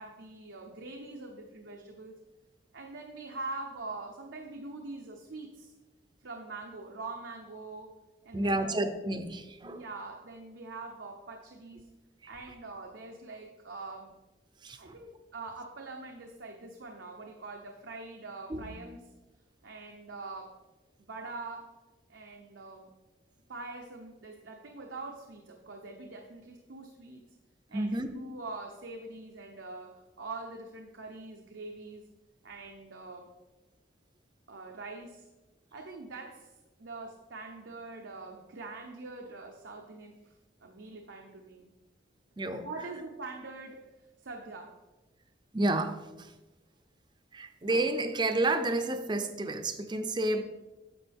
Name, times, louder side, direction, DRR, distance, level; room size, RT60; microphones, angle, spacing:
voice 1, 0.0-2.2 2.7-5.7 6.2-8.0 8.2-8.8 9.6-11.9 12.3-14.2 14.8-19.1 19.6-20.6 21.0-21.8 22.1-22.9 23.5-27.2 27.7-32.1 32.4-33.3 34.5-35.3 35.7-40.3 40.6-41.7 42.6-44.8, right 3 dB, 90° right, 1 dB, 0.9 m, -44 dB
voice 2, 8.3-9.8 14.6-14.9 18.5-18.7 27.7-28.1 42.4-42.7 45.5-46.3 47.3-50.4, right 2 dB, 25° right, 9 dB, 0.6 m, -30 dB
10.0 x 6.9 x 3.5 m, 1.1 s
head